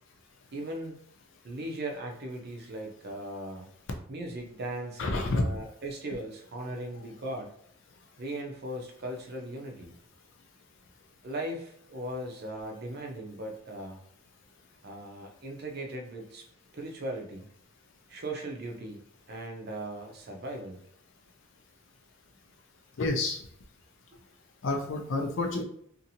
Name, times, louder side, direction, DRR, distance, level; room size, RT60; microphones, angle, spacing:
voice 1, 0.5-1.0 1.4-3.7 4.1-7.5 8.2-10.0 11.2-14.0 14.8-16.4 16.7-17.5 18.1-19.0 19.3-20.8 24.1-24.2, right 1 dB, 50° right, 2 dB, 0.6 m, -38 dB
voice 2, 5.0-5.5 23.0-23.4 24.6-25.6, left 2 dB, 60° left, 3 dB, 0.4 m, -28 dB
2.6 x 2.5 x 2.7 m, 0.67 s
head